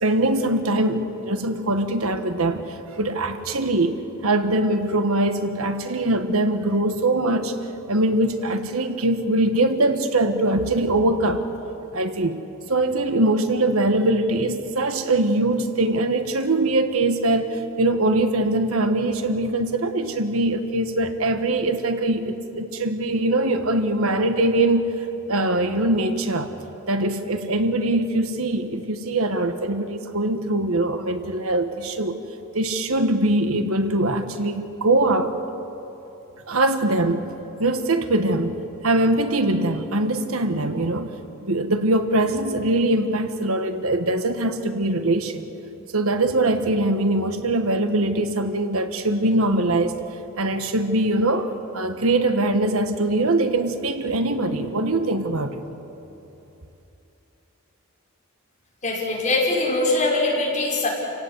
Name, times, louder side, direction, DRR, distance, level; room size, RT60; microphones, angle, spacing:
voice 1, 0.0-7.5 7.9-11.5 11.9-12.4 12.7-24.9 25.3-26.5 26.9-32.2 32.5-35.4 36.5-37.3 37.6-41.1 41.4-45.5 45.9-50.0 50.4-55.6, right 2 dB, 85° right, 7 dB, 1.5 m, -22 dB
voice 2, 58.8-60.9, left 2 dB, 35° left, -4 dB, 5.7 m, -22 dB
28.5 x 17.5 x 8.3 m, 3.0 s
head